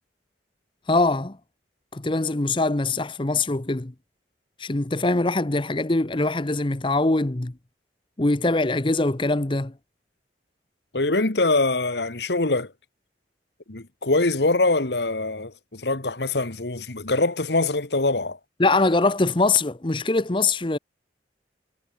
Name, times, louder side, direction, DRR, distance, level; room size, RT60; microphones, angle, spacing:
voice 1, 0.9-1.4 1.9-3.9 4.6-7.5 8.2-9.7 18.6-20.8, left 2 dB, 30° left, 0.9 m, -23 dB
voice 2, 10.9-12.7 13.7-18.4, left 2 dB, 70° left, 1.7 m, -23 dB
head